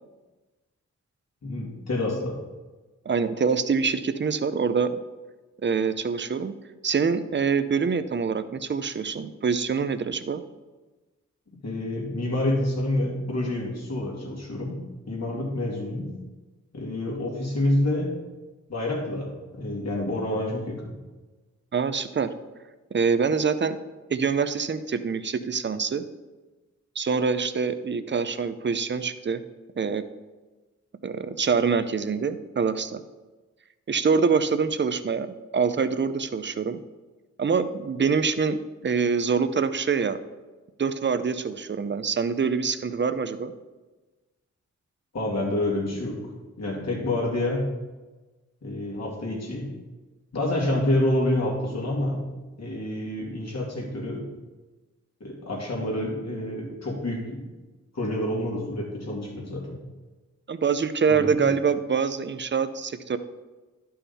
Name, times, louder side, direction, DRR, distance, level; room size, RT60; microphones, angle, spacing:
voice 1, 1.4-2.4 11.6-14.8 15.1-16.1 16.7-18.1 18.7-20.9 45.1-46.2 46.6-47.7 48.6-49.7 50.3-52.2 52.6-54.3 55.2-57.4 57.9-59.8 61.1-61.5, left 1 dB, 60° left, -3 dB, 2.6 m, -28 dB
voice 2, 3.1-5.0 5.6-6.5 6.8-10.4 21.7-22.3 22.9-23.8 24.1-26.0 27.0-29.4 29.8-30.0 31.0-33.0 33.9-36.8 37.4-40.2 40.8-43.5 60.5-63.2, right 5 dB, 40° right, 11 dB, 0.6 m, -25 dB
11.5 x 5.7 x 4.2 m, 1.2 s
wide cardioid pair, 90°, 29 cm